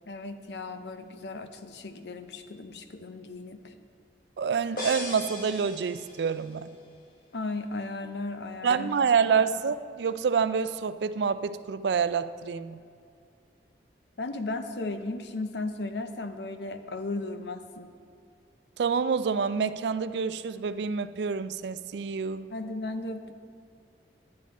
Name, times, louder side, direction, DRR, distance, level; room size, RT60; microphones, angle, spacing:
voice 1, 0.1-3.8 7.3-8.9 14.2-17.9 22.5-23.3, left 2 dB, 70° left, 8 dB, 0.7 m, -35 dB
voice 2, 4.4-6.7 8.6-12.8 18.8-22.5, right 6 dB, 75° right, 13 dB, 0.4 m, -27 dB
sound 1, 4.8-6.6, left 2 dB, 55° left, 1.2 m, -38 dB
10.5 x 9.7 x 4.2 m, 2.4 s
head